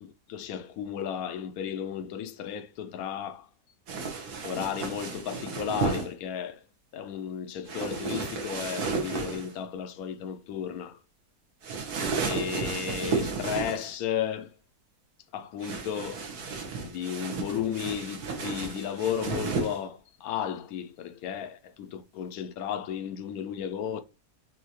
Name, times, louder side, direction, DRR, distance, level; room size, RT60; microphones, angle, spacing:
voice 1, 0.0-3.5 4.4-6.6 6.9-11.0 12.2-14.5 15.3-16.3 16.8-24.0, left 8 dB, 75° left, 1.0 m, -34 dB
sound 1, 3.9-6.1 7.7-9.5 11.6-13.9 15.6-19.8, right 4 dB, 80° right, 1.6 m, -33 dB
5.5 x 2.8 x 2.9 m
omnidirectional pair, 1.7 m